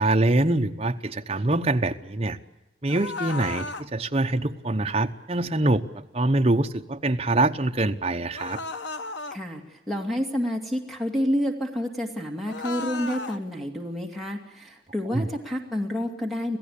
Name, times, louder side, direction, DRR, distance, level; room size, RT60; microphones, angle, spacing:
voice 1, 0.0-2.4 2.8-8.6 15.1-15.3, right 2 dB, 30° right, 5 dB, 1.0 m, -24 dB
sound 1, 2.9-3.9 8.3-9.4 12.5-13.4, left 3 dB, 75° left, 1.0 m, -34 dB
voice 2, 9.3-16.6, equal, ahead, 2 dB, 2.4 m, -29 dB
27.0 x 16.5 x 8.5 m, 0.95 s
head